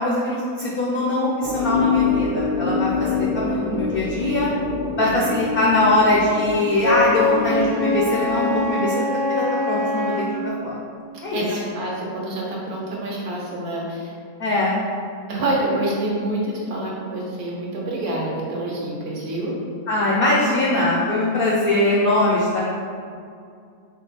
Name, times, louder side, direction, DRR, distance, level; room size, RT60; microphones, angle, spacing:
voice 1, 0.0-4.5 5.0-10.8 11.2-11.4 14.4-14.8 19.9-22.6, left 1 dB, 70° left, -4 dB, 0.5 m, -22 dB
sound 1, 1.4-8.7, left 4 dB, 5° right, 0.3 m, -25 dB
Wind instrument woodwind instrument, 6.8-10.3, left 2 dB, 60° right, 1.2 m, -23 dB
voice 2, 11.3-14.1 15.3-19.5, right 1 dB, 80° right, -4 dB, 1.4 m, -27 dB
4.7 x 2.2 x 4.1 m, 2.3 s
omnidirectional pair, 1.6 m